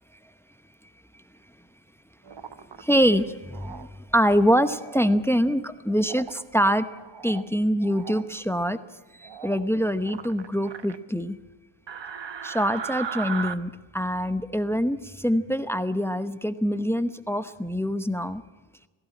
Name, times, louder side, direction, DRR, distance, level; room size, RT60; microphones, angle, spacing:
Frog Stress, 2.2-2.8 3.5-3.9 4.6-5.1 6.0-6.4 6.9-7.5 7.8-8.2 9.2-9.7 10.0-11.0 11.9-13.5, right 7 dB, 60° right, 1.0 m, -37 dB
voice 1, 2.8-6.9 7.2-8.8 9.2-11.4 12.4-18.4, equal, 5° left, 12 dB, 0.9 m, -24 dB
18.5 x 16.5 x 8.7 m, 1.2 s
wide cardioid pair, 85°, 48 cm